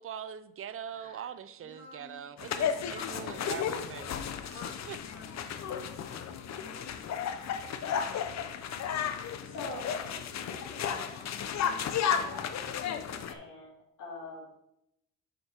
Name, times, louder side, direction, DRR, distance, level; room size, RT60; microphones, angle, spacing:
voice 1, 0.0-4.3 4.9-5.0, right 8 dB, 45° right, 13 dB, 0.6 m, -42 dB
voice 2, 0.8-1.3 9.4-14.6, left 2 dB, 80° left, -7 dB, 2.7 m, -45 dB
voice 3, 1.6-2.3 2.8-3.6 4.2-5.4 6.0-7.0 7.2-8.6, left 3 dB, 40° left, 1 dB, 2.1 m, -51 dB
sound 1, 2.4-13.3, left 8 dB, 60° left, 0.8 m, -34 dB
7.7 x 5.2 x 4.4 m, 0.80 s
cardioid pair, 90°, 30 cm